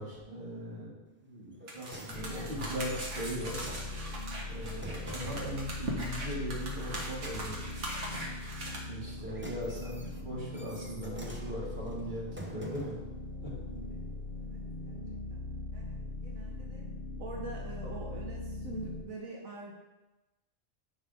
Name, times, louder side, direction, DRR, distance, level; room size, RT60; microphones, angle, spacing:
voice 1, 0.0-3.6 4.4-7.7 8.8-13.0 13.4-13.5, equal, 35° right, -6 dB, 2.4 m, -39 dB
sound 1, 1.5-5.6 8.9-13.1 13.9-14.0, right 2 dB, 15° right, 0.4 m, -48 dB
sound 2, 1.7-8.8, right 1 dB, 65° right, 1.7 m, -40 dB
sound 3, 2.1-19.0, left 2 dB, 45° left, 1.1 m, -41 dB
voice 2, 14.4-15.4 15.7-16.9 17.2-19.7, right 2 dB, 80° right, -1 dB, 1.5 m, -44 dB
9.7 x 5.6 x 3.6 m, 1.0 s
omnidirectional pair, 1.4 m